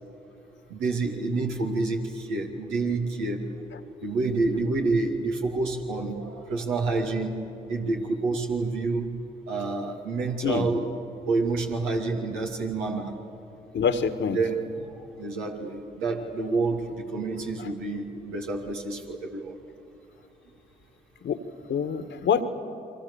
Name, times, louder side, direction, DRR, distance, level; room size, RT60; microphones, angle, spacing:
voice 1, 0.7-3.5 4.0-7.4 7.7-9.1 9.5-11.0 11.3-13.2 14.3-19.6, right 3 dB, 85° right, 0 dB, 2.6 m, -28 dB
voice 2, 13.7-14.4 17.6-17.7 21.2-21.4 21.7-22.4, left 7 dB, 65° left, 9 dB, 1.7 m, -25 dB
29.5 x 24.0 x 7.1 m, 2.7 s
hypercardioid pair, 40°, 20 cm